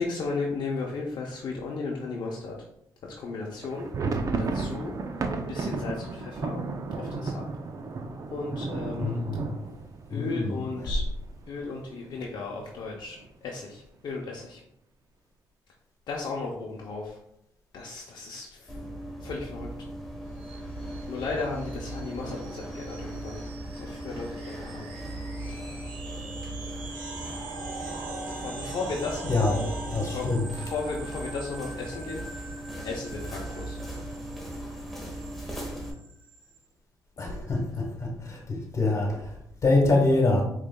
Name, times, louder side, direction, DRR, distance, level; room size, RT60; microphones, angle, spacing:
voice 1, 0.0-2.6 3.0-4.9 5.5-6.6 7.0-7.4 8.3-9.2 10.1-11.0 11.5-14.6 16.1-17.2 17.7-18.8 19.2-19.7 21.1-23.5 23.7-24.9 28.2-29.8 30.1-30.3 30.5-32.4 32.8-33.8, left 3 dB, 65° left, -2 dB, 0.6 m, -35 dB
sound 1, 3.6-11.3 11.6-11.7 12.0-12.2 12.8-13.3, right 3 dB, 45° right, 0.5 m, -33 dB
voice 2, 9.0-9.6 10.1-10.9 29.2-29.6 29.9-30.5 37.2-40.4, left 2 dB, 40° left, 1 dB, 1.2 m, -26 dB
sound 2, 18.7-35.9, right 1 dB, ahead, 1.2 m, -38 dB
sound 3, 20.4-36.6, right 3 dB, 90° right, 0.9 m, -43 dB
5.0 x 3.1 x 2.2 m, 0.75 s
cardioid pair, 80°, 8 cm